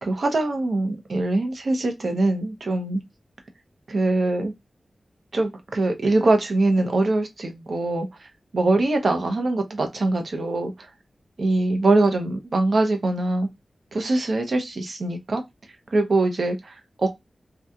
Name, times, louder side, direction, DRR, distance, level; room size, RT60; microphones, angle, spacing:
voice 1, 0.0-3.0 3.9-4.5 5.3-8.3 8.5-10.9 11.4-13.5 13.9-15.4 15.9-17.1, right 2 dB, 65° right, 0.8 m, -23 dB
2.8 x 2.3 x 3.5 m
wide cardioid pair, 90°, 0 cm